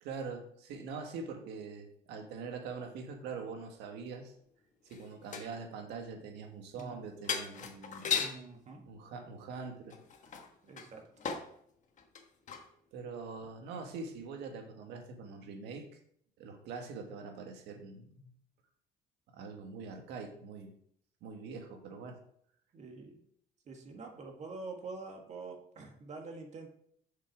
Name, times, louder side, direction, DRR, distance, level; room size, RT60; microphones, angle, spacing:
voice 1, 0.0-4.3 4.9-8.2 8.9-10.0 12.9-16.0 16.4-18.3 19.3-20.7 21.2-22.2, right 4 dB, 85° right, 4 dB, 1.6 m, -43 dB
sound 1, 4.9-5.6 6.8-6.9 7.2-8.4 9.9-11.5 12.0-12.7 13.3-13.4, left 6 dB, 45° left, 1.2 m, -37 dB
voice 2, 8.2-8.9 9.1-9.2 10.6-11.1 22.7-23.2 23.7-26.7, right 3 dB, 45° right, 3 dB, 1.8 m, -46 dB
7.1 x 5.8 x 4.7 m, 0.65 s
cardioid pair, 110°, 17 cm